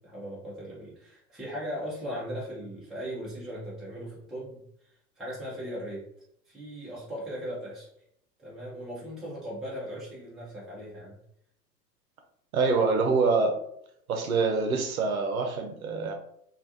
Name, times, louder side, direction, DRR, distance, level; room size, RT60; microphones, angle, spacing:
voice 1, 0.0-4.6 5.2-6.0 6.5-7.9 8.4-11.2, equal, ahead, -7 dB, 0.6 m, -38 dB
voice 2, 12.5-13.5 14.1-16.1, right 4 dB, 60° right, 4 dB, 0.7 m, -25 dB
3.2 x 2.5 x 2.6 m, 0.71 s
figure-of-eight pair, 100°, 50 cm